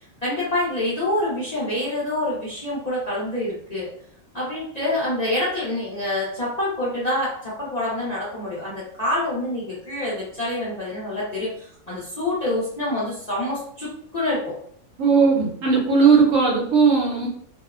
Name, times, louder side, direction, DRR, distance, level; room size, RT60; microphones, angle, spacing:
voice 1, 0.2-3.9 4.3-14.5 16.0-16.1, left 1 dB, 40° left, -8 dB, 0.6 m, -26 dB
voice 2, 15.0-17.3, right 5 dB, 70° right, -1 dB, 1.0 m, -17 dB
2.6 x 2.0 x 2.4 m, 0.63 s
omnidirectional pair, 1.5 m